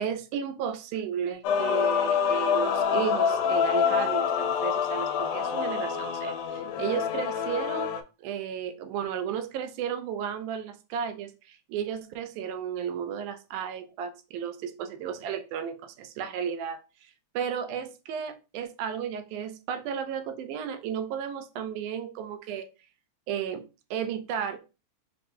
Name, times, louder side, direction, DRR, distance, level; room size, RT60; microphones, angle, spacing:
voice 1, 0.0-7.9 8.2-22.7 23.3-23.6 23.9-24.6, right 8 dB, 90° right, 9 dB, 2.1 m, -33 dB
Male singing / Female singing / Musical instrument, 1.4-8.0, left 7 dB, 85° left, 2.0 m, -26 dB
5.7 x 2.1 x 2.7 m, 0.30 s
omnidirectional pair, 3.4 m